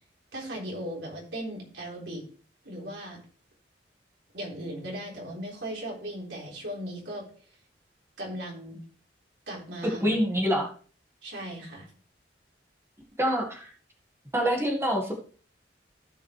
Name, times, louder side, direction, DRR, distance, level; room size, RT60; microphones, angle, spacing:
voice 1, 0.3-2.3 2.6-3.2 4.3-7.3 8.2-8.8 9.5-10.1 10.4-10.5 11.2-11.9, right 1 dB, 80° right, -2 dB, 3.7 m, -37 dB
voice 2, 9.8-10.7 13.2-13.7 14.3-15.1, equal, 15° right, 0 dB, 1.8 m, -26 dB
15.5 x 5.6 x 3.3 m, 0.42 s
head